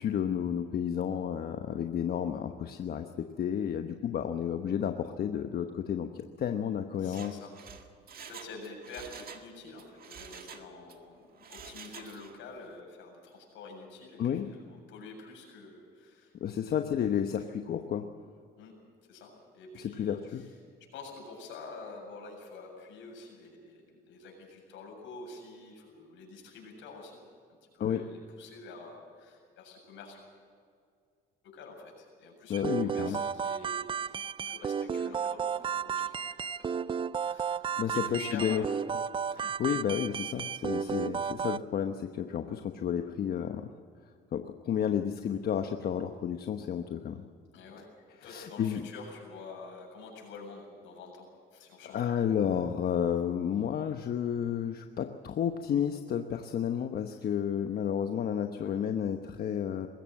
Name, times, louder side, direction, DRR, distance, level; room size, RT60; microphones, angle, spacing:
voice 1, 0.0-7.4 14.2-14.5 16.4-18.1 19.8-20.4 27.8-28.0 32.5-33.2 37.8-38.6 39.3-43.7 44.3-47.2 48.3-48.9 51.8-59.9, left 8 dB, 50° left, 6 dB, 1.1 m, -31 dB
voice 2, 7.0-7.5 8.3-16.8 18.6-18.8 19.1-20.5 20.8-27.2 27.6-30.2 31.4-34.2 34.4-37.6 37.9-38.7 39.3-39.4 47.5-47.9 48.2-52.2 57.1-57.3 58.6-58.7, left 3 dB, 75° left, 1 dB, 7.6 m, -48 dB
Mechanisms, 7.0-9.5 9.8-11.0 11.4-12.4 12.7-12.8, right 7 dB, 50° right, 1.9 m, -48 dB
sound 1, 32.5-41.6, right 7 dB, 25° right, 0.4 m, -33 dB
21.0 x 16.5 x 7.7 m, 2.2 s
cardioid pair, 115°, 20 cm